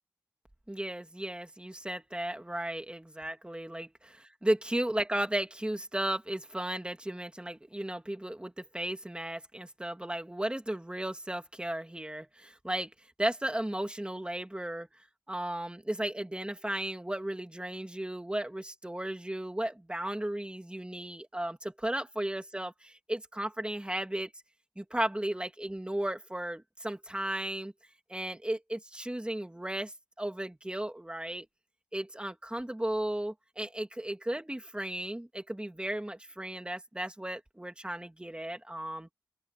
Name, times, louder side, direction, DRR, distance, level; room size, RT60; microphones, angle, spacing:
voice 1, 0.7-12.9 13.2-14.9 15.3-24.3 24.8-27.7 28.1-31.5 31.9-39.1, right 1 dB, 15° right, 2.6 m, -35 dB
open air
wide cardioid pair, 95°, 7 cm